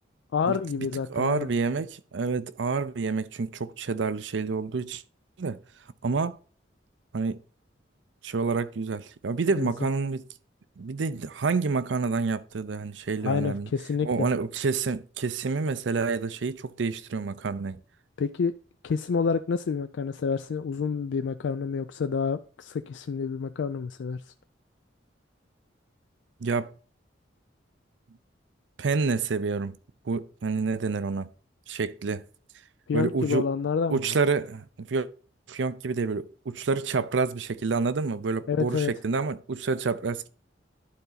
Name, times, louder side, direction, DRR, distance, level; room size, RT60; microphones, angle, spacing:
voice 1, 0.3-1.5 9.6-9.7 13.2-14.3 18.2-18.5 18.8-24.2 32.9-34.0 38.5-38.9, left 5 dB, 70° left, 0.4 m, -28 dB
voice 2, 1.1-5.0 5.4-5.6 6.0-6.4 7.1-7.4 8.2-10.2 10.8-13.7 14.0-17.8 26.4-26.7 28.8-29.8 30.1-31.3 31.7-32.3 32.9-33.5 33.9-35.1 35.5-40.3, right 4 dB, 70° right, 0.5 m, -28 dB
11.5 x 4.0 x 4.0 m
head